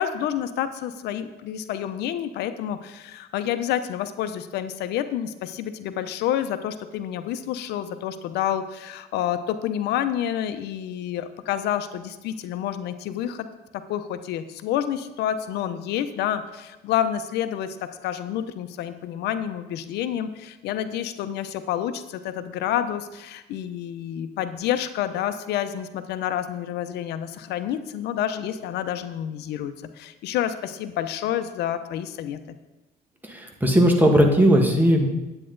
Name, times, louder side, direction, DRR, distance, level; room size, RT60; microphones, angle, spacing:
voice 1, 0.0-13.5 13.7-32.4, left 10 dB, 80° left, 11 dB, 0.6 m, -29 dB
voice 2, 33.2-35.1, equal, 10° right, 2 dB, 1.5 m, -18 dB
9.9 x 8.7 x 3.9 m, 1.1 s
cardioid pair, 110°, 17 cm